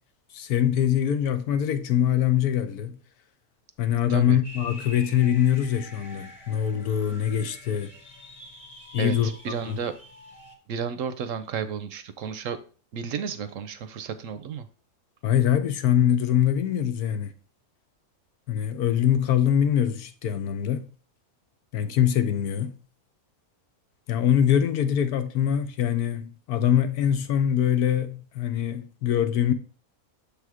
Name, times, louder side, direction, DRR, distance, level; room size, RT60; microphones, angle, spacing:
voice 1, 0.3-3.0 3.8-7.9 8.9-9.8 15.2-17.3 18.5-20.9 21.7-22.7 24.1-29.5, left 9 dB, 90° left, 1.2 m, -23 dB
sound 1, 4.4-10.5, left 1 dB, 25° left, 1.2 m, -46 dB
voice 2, 9.4-9.9 10.7-12.6 12.9-14.7, right 7 dB, 65° right, 0.9 m, -32 dB
6.9 x 3.5 x 4.7 m
omnidirectional pair, 1.6 m